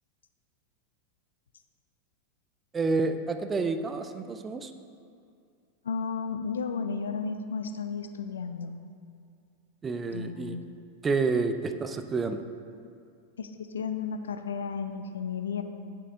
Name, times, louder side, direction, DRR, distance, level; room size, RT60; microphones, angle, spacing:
voice 1, 2.7-4.7 9.8-10.6 11.0-12.4, right 4 dB, 20° right, 8 dB, 0.4 m, -29 dB
voice 2, 5.8-8.7 10.1-10.7 13.4-15.6, left 5 dB, 65° left, 8 dB, 0.4 m, -33 dB
8.2 x 7.4 x 2.6 m, 2.4 s
figure-of-eight pair, 90°, 0 cm